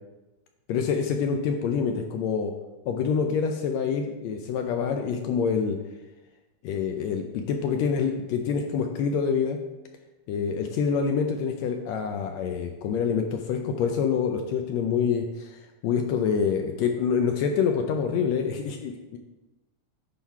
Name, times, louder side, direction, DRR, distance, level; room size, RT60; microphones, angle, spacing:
voice 1, 0.7-2.5 2.9-5.8 6.6-9.6 10.3-19.2, left 6 dB, 75° left, 4 dB, 1.7 m, -26 dB
10.5 x 3.8 x 4.6 m, 1.1 s
omnidirectional pair, 3.4 m